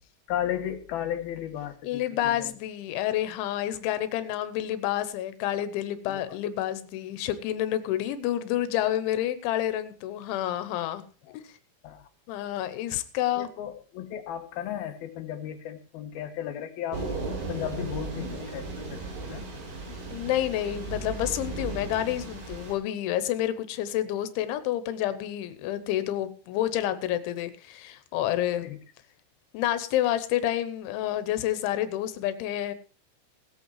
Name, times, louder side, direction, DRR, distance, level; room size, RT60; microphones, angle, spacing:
voice 1, 0.3-2.5 6.1-6.4 11.3-11.4 11.8-12.1 13.4-19.4 28.6-28.8, left 10 dB, 65° left, 7 dB, 2.7 m, -35 dB
voice 2, 1.8-11.0 11.3-11.4 12.3-13.5 20.1-28.7 29.5-32.7, left 12 dB, 85° left, 12 dB, 3.4 m, -29 dB
Thunder / Rain, 16.9-22.7, right 3 dB, 80° right, 6.7 m, -36 dB
18.0 x 8.2 x 4.7 m, 0.39 s
omnidirectional pair, 5.3 m